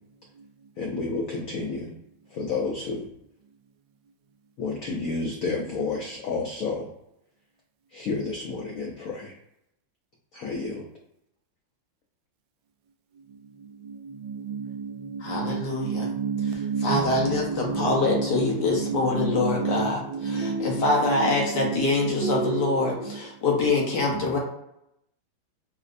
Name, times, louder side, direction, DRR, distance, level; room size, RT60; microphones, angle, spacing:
voice 1, 0.8-2.0 2.3-3.0 4.6-6.9 7.9-9.3 10.3-10.9, left 4 dB, 85° left, 0.7 m, -30 dB
voice 2, 14.2-21.9 22.2-23.2 24.1-24.2, right 5 dB, 80° right, 1.3 m, -30 dB
voice 3, 15.2-16.1 16.8-20.0 20.3-24.4, left 3 dB, 65° left, 1.4 m, -25 dB
4.9 x 2.0 x 2.5 m
omnidirectional pair, 2.1 m